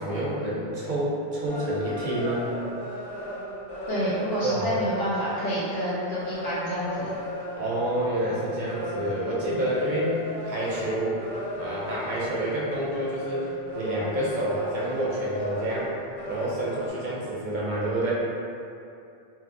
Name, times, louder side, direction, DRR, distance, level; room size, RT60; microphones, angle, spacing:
voice 1, 0.0-2.5 4.4-4.7 7.6-11.2 11.6-15.9 16.2-18.1, right 1 dB, 60° right, -6 dB, 0.6 m, -28 dB
sound 1, 1.5-16.9, equal, 60° left, 1.3 m, -35 dB
voice 2, 3.9-7.2, equal, 80° left, -11 dB, 1.3 m, -28 dB
2.8 x 2.6 x 2.5 m, 2.6 s
omnidirectional pair, 1.0 m